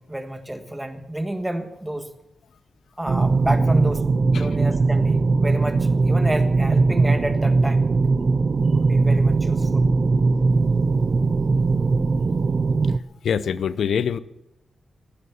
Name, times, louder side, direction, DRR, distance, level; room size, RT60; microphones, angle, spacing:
voice 1, 0.0-2.1 3.0-4.1 4.3-7.9 8.7-9.8, right 1 dB, 10° right, 7 dB, 1.5 m, -29 dB
sound 1, 3.1-13.0, right 3 dB, 40° right, 0.5 m, -20 dB
voice 2, 13.2-14.2, left 7 dB, 80° left, 16 dB, 0.6 m, -24 dB
16.0 x 11.0 x 7.0 m, 0.89 s
wide cardioid pair, 125°, 0 cm